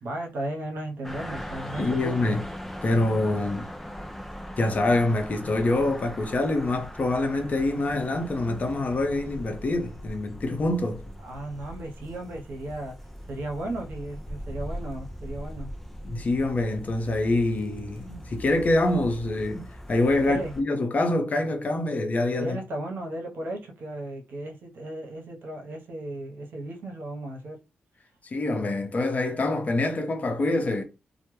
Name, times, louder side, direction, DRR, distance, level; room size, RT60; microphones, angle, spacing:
voice 1, 0.0-2.3 11.2-12.9 13.3-15.7 20.2-20.5 22.4-27.6, right 1 dB, 75° right, 0.7 m, -35 dB
sound 1, 1.0-20.6, equal, 5° left, 0.5 m, -40 dB
voice 2, 1.8-2.4 2.8-3.7 4.6-11.0 16.0-22.6 28.3-30.8, left 2 dB, 45° left, 0.6 m, -25 dB
2.1 x 2.1 x 3.0 m
cardioid pair, 65°, 4 cm